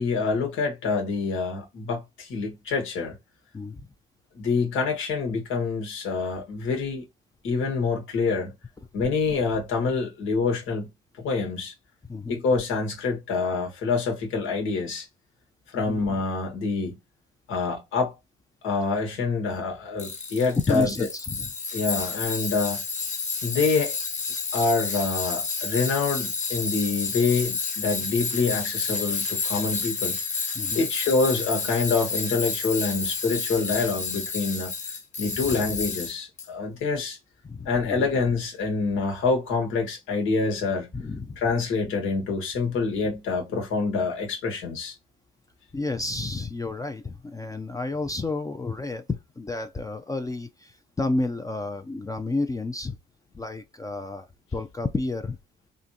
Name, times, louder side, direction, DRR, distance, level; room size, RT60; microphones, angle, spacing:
voice 1, 0.0-3.1 4.3-7.1 7.4-8.5 8.9-10.9 11.2-11.7 12.3-15.1 15.7-17.0 17.5-18.1 18.6-20.9 21.7-22.8 23.4-23.9 24.5-30.1 30.5-34.7 35.2-37.2 37.6-40.9 41.4-44.9, left 4 dB, 85° left, 1.4 m, -26 dB
Tools, 20.0-36.5, left 4 dB, 35° left, 0.9 m, -30 dB
voice 2, 20.7-21.5 30.5-30.8 35.4-35.6 37.4-38.1 40.9-41.4 45.7-53.0 53.3-54.3 54.5-55.4, left 3 dB, 15° left, 0.4 m, -30 dB
3.7 x 2.5 x 2.8 m
cardioid pair, 90°, 20 cm